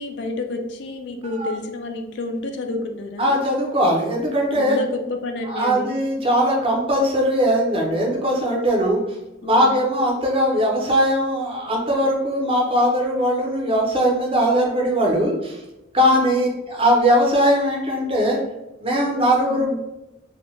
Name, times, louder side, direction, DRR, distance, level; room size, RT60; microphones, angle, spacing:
voice 1, 0.0-3.4 4.5-6.0 9.4-9.8 16.0-16.3 19.5-19.8, left 2 dB, 60° left, 5 dB, 0.3 m, -30 dB
voice 2, 3.2-4.8 5.5-9.0 9.4-15.6 15.9-18.4 18.8-19.9, equal, 30° right, -1 dB, 0.5 m, -20 dB
2.6 x 2.1 x 3.0 m, 0.96 s
head